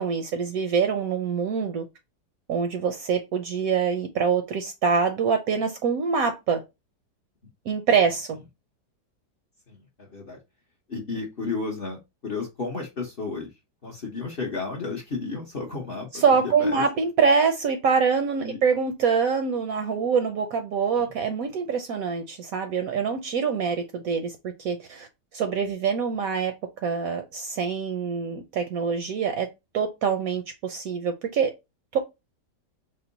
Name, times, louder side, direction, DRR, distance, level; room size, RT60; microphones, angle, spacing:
voice 1, 0.0-1.8 2.5-6.6 7.7-8.4 16.2-25.1 25.3-26.5 26.8-29.5 29.7-31.5 31.9-32.0, right 6 dB, 70° right, 0.9 m, -25 dB
voice 2, 9.7-10.4 10.9-13.5 13.8-16.8 18.4-18.6 21.0-21.1, left 4 dB, 45° left, 0.8 m, -33 dB
4.4 x 2.0 x 3.9 m
omnidirectional pair, 1.9 m